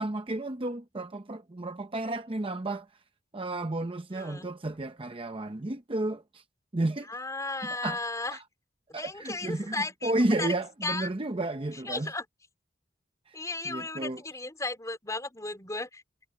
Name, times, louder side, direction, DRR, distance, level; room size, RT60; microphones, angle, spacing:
voice 1, 0.0-2.9 3.3-6.4 6.7-7.1 7.8-8.0 8.3-8.4 8.9-12.1 13.3-14.2, right 2 dB, 25° right, 0.8 m, -32 dB
voice 2, 4.1-4.5 7.1-8.4 8.9-10.1 10.4-10.5 10.8-11.1 11.9-12.2 13.3-16.0, left 2 dB, 15° left, 3.9 m, -35 dB
head